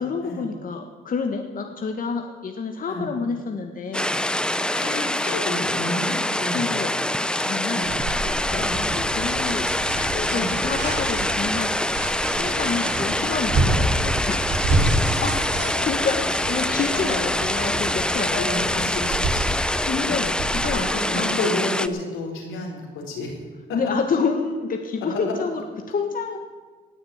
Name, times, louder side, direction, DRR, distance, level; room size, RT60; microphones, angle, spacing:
voice 1, 0.0-4.2 6.5-8.0 8.2-11.8 12.4-14.6 15.8-18.7 19.9-21.4 23.7-26.4, left 5 dB, 45° left, 5 dB, 1.4 m, -29 dB
sound 1, 3.9-21.9, left 1 dB, 5° left, 0.6 m, -25 dB
voice 2, 4.7-6.7 7.6-7.9 8.5-8.8 10.3-10.5 13.5-13.7 14.9-16.1 16.8-17.3 18.3-19.5 20.0-20.2 20.7-23.3 23.7-23.8, left 2 dB, 85° left, 0 dB, 4.2 m, -31 dB
sound 2, 7.8-20.7, right 2 dB, 60° right, 4.9 m, -28 dB
18.5 x 6.5 x 8.9 m, 1.4 s
cardioid pair, 90°, 20 cm